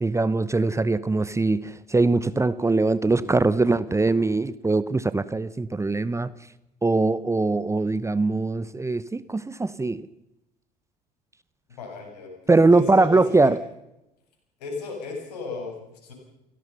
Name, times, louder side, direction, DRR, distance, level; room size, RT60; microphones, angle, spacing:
voice 1, 0.0-6.3 6.8-10.1 12.5-13.6, right 3 dB, 15° right, 16 dB, 0.9 m, -22 dB
voice 2, 11.8-13.5 14.6-16.1, left 4 dB, 70° left, 1 dB, 7.4 m, -36 dB
29.0 x 17.5 x 5.7 m, 0.89 s
figure-of-eight pair, 55°, 21 cm